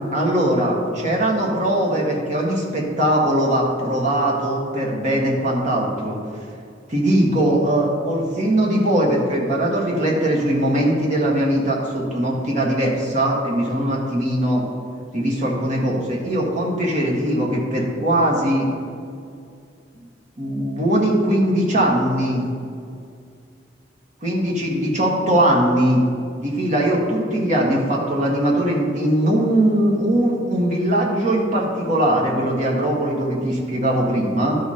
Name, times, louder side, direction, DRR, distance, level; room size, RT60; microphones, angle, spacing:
voice 1, 0.1-6.2 6.9-14.6 15.1-18.7 20.4-22.4 24.2-26.0 26.4-34.6, right 1 dB, 40° right, -3 dB, 1.7 m, -20 dB
12.5 x 4.3 x 5.0 m, 2.3 s
head